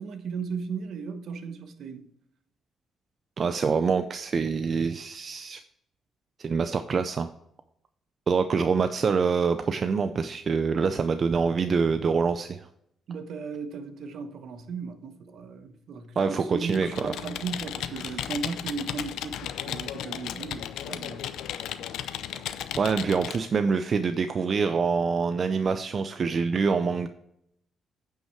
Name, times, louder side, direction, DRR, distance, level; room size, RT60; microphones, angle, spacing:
voice 1, 0.0-2.1 13.1-21.2, right 5 dB, 70° right, 1.1 m, -36 dB
voice 2, 3.4-5.6 6.4-7.3 8.3-12.7 16.2-17.1 17.9-18.2 22.8-27.1, right 5 dB, 45° right, 0.5 m, -25 dB
Computer keyboard, 16.6-23.5, left 10 dB, 85° left, 0.5 m, -35 dB
9.1 x 5.6 x 4.7 m
cardioid pair, 90°, 0 cm